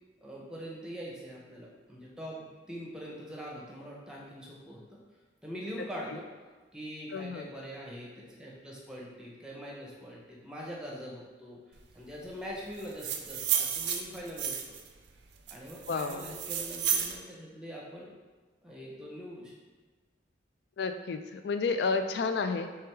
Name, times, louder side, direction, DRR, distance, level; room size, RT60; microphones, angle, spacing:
voice 1, 0.2-5.0 5.4-6.3 6.7-14.8 15.5-18.1 18.6-19.5, equal, 5° right, -4 dB, 0.7 m, -43 dB
voice 2, 7.1-7.5 15.9-16.3 20.8-22.7, left 4 dB, 65° left, 8 dB, 0.3 m, -31 dB
sound 1, 12.8-14.9 15.5-17.2, right 8 dB, 70° right, 0.4 m, -32 dB
3.4 x 3.3 x 4.5 m, 1.4 s
head